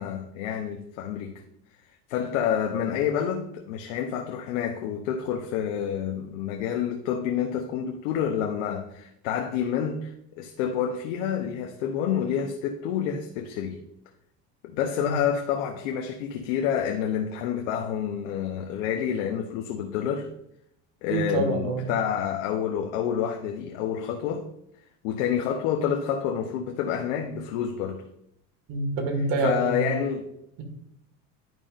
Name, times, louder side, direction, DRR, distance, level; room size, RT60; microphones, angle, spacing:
voice 1, 0.0-1.4 2.1-13.8 14.6-20.3 21.0-24.5 25.0-28.0 29.4-30.3, left 8 dB, 85° left, 0.9 m, -28 dB
voice 2, 21.1-21.8 28.7-29.9, right 3 dB, 65° right, 1.9 m, -26 dB
11.0 x 5.2 x 2.5 m
supercardioid pair, 125°, 37 cm